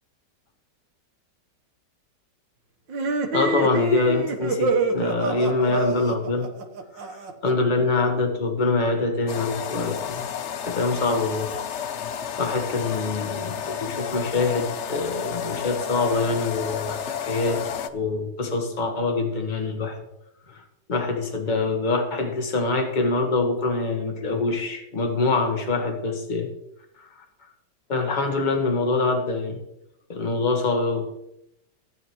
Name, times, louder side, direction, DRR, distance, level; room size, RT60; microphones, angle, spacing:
sound 1, 2.9-7.5, right 3 dB, 85° right, 1.9 m, -27 dB
voice 1, 3.3-6.5 6.9-10.2 10.6-11.5 12.4-17.6 17.9-20.0 20.5-20.6 20.9-26.5 27.0-27.2 27.9-29.6 30.1-31.1, left 3 dB, 25° left, 3 dB, 1.5 m, -25 dB
sound 2, 9.3-17.9, left 8 dB, 60° left, 0.7 m, -31 dB
16.0 x 9.3 x 3.1 m, 0.84 s
omnidirectional pair, 1.9 m